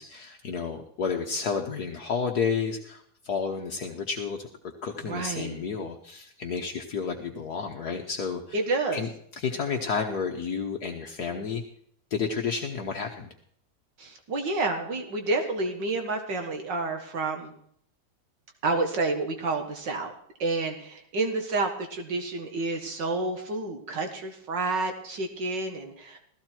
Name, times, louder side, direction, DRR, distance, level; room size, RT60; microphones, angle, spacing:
voice 1, 0.0-4.5 4.8-8.6 8.9-9.1 9.4-11.6 12.1-13.3, left 5 dB, 60° left, 2 dB, 1.7 m, -31 dB
voice 2, 5.0-5.6 8.5-9.0 14.0-17.5 18.6-20.1 20.4-26.2, right 3 dB, 75° right, 4 dB, 2.3 m, -29 dB
17.0 x 14.5 x 4.5 m, 0.65 s
omnidirectional pair, 1.9 m